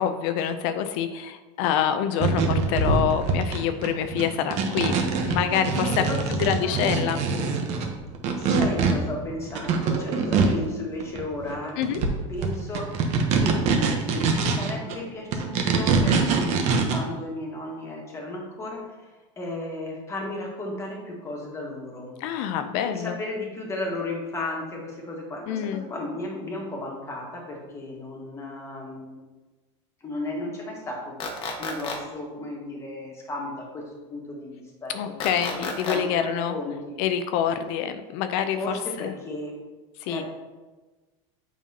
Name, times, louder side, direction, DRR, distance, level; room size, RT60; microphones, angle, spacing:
voice 1, 0.0-4.9 5.2-6.0 6.3-7.2 11.8-12.0 22.2-23.2 25.5-25.8 34.9-36.6 37.0-39.1 40.0-40.2, left 9 dB, 55° left, 9 dB, 0.5 m, -26 dB
sound 1, 2.2-10.7 11.0-11.5 11.8-14.9 15.3-17.0, right 5 dB, 45° right, 0.9 m, -24 dB
voice 2, 5.6-6.2 6.6-7.1 8.3-11.7 12.3-19.1 19.4-22.1 22.8-29.2 30.0-33.8 34.1-36.9 38.5-39.5 40.1-40.2, left 2 dB, 15° left, -2 dB, 1.5 m, -34 dB
sound 2, 31.2-32.0 35.2-36.0, left 4 dB, 30° left, 1.1 m, -31 dB
7.2 x 5.5 x 2.8 m, 1.2 s
supercardioid pair, 140°, 16 cm